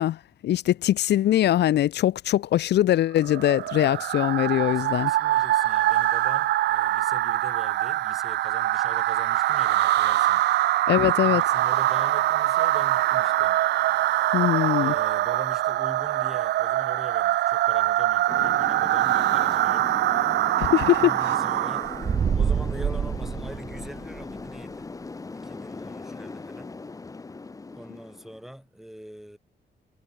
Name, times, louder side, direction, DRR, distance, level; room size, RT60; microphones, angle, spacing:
voice 1, 0.0-5.1 10.9-11.4 14.3-14.9 20.6-21.1, left 12 dB, 75° left, 0.7 m, -22 dB
sound 1, 3.2-22.1, right 14 dB, 75° right, 0.4 m, -23 dB
voice 2, 3.7-4.1 4.6-13.6 14.8-19.9 21.0-24.9 25.4-26.8 27.7-29.4, equal, ahead, 5.7 m, -43 dB
sound 2, 18.3-28.5, left 3 dB, 20° left, 1.6 m, -39 dB
sound 3, 21.8-24.3, right 7 dB, 40° right, 1.3 m, -26 dB
wide cardioid pair, 155°, 18 cm